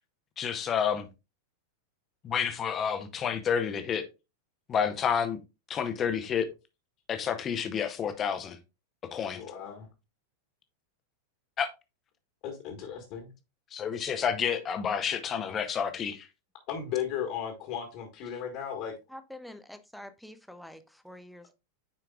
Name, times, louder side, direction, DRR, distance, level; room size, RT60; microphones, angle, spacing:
voice 1, 0.4-1.1 2.2-4.0 4.7-5.4 5.7-6.4 7.1-8.6 9.1-9.4 11.6-11.7 13.7-16.3, left 7 dB, 25° left, 0.9 m, -29 dB
voice 2, 9.3-9.9 12.4-13.3 16.7-18.9, left 8 dB, 45° left, 1.6 m, -35 dB
voice 3, 19.1-21.5, left 1 dB, ahead, 0.6 m, -47 dB
9.4 x 4.5 x 2.4 m
figure-of-eight pair, 90°, 0 cm